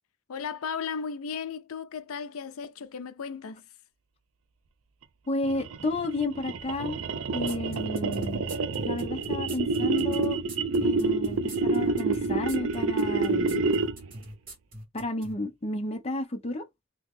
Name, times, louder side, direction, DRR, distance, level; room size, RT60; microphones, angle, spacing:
voice 1, 0.3-3.6, left 6 dB, 85° left, 0.5 m, -35 dB
voice 2, 5.3-7.0 7.3-8.4 8.8-10.4 10.8-13.7 14.9-16.6, left 2 dB, 30° left, 0.5 m, -32 dB
sound 1, 5.4-14.1, right 3 dB, 70° right, 0.5 m, -28 dB
sound 2, 7.5-15.3, right 1 dB, 40° right, 1.7 m, -42 dB
2.9 x 2.8 x 3.6 m
head